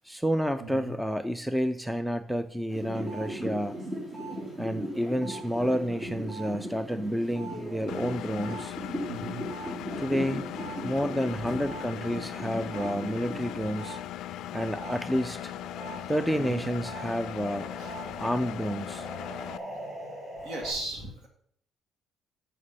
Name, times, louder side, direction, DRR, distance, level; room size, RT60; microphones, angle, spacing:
voice 1, 0.0-3.7 4.6-8.8 10.0-10.4 10.8-14.0 14.5-15.5 16.1-17.7 18.2-19.1, equal, 5° right, 11 dB, 0.4 m, -30 dB
voice 2, 0.6-0.9 9.1-9.4 11.3-11.6 16.4-16.6 17.8-18.2 20.4-21.3, right 2 dB, 65° right, 2 dB, 2.0 m, -38 dB
sound 1, 2.7-14.0 14.3-20.7, right 1 dB, 40° right, 3.7 m, -39 dB
Engine, 7.9-19.6, left 13 dB, 75° left, 0.3 m, -39 dB
6.7 x 6.4 x 5.5 m, 0.65 s
cardioid pair, 125°, 0 cm